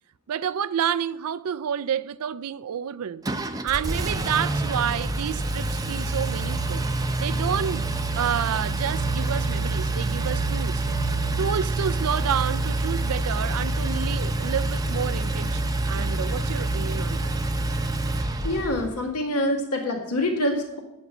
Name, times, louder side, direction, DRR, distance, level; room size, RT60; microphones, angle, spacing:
voice 1, 0.3-3.2 3.6-6.9 7.2-7.9 8.2-10.8 11.4-17.4, right 8 dB, 75° right, 0.4 m, -29 dB
Engine, 3.2-19.0, right 2 dB, 15° right, 0.6 m, -27 dB
voice 2, 18.4-20.8, left 1 dB, 85° left, 1.9 m, -25 dB
8.4 x 5.5 x 7.9 m
head